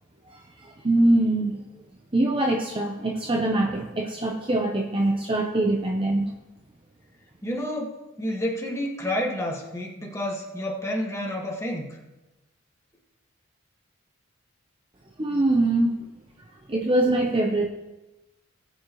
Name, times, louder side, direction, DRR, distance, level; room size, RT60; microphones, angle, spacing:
voice 1, 0.6-1.6 2.1-6.3 15.2-15.9 16.7-17.7, right 2 dB, 25° right, 1 dB, 0.8 m, -23 dB
voice 2, 7.4-12.0, left 1 dB, 15° left, -2 dB, 1.7 m, -30 dB
20.0 x 7.6 x 3.1 m, 1.0 s
head